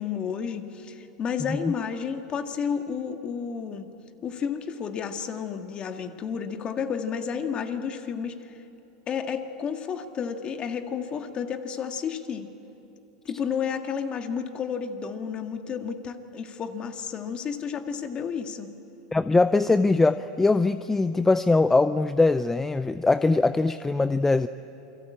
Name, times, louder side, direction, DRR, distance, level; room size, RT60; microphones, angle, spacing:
voice 1, 0.0-3.9 4.2-8.4 9.1-12.5 13.3-18.7, left 7 dB, 30° left, 6 dB, 2.0 m, -31 dB
voice 2, 19.1-24.5, left 3 dB, 10° left, 13 dB, 0.5 m, -22 dB
28.5 x 23.5 x 8.7 m, 3.0 s
supercardioid pair, 125°, 3 cm